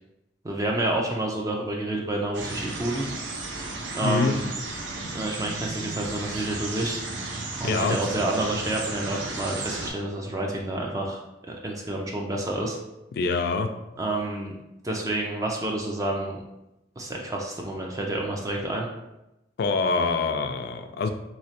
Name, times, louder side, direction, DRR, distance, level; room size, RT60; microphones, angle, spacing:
voice 1, 0.4-3.1 3.3-3.4 3.9-4.5 5.1-7.0 7.6-11.2 11.5-12.8 14.0-14.5 14.8-16.4 17.0-18.9, right 1 dB, 20° right, 0 dB, 0.4 m, -29 dB
sound 1, 2.3-9.9, right 2 dB, 85° right, 0.6 m, -34 dB
voice 2, 4.0-4.3 7.6-8.0 13.2-13.7 19.6-21.1, left 4 dB, 60° left, 7 dB, 0.3 m, -25 dB
3.1 x 2.8 x 2.8 m, 0.92 s
head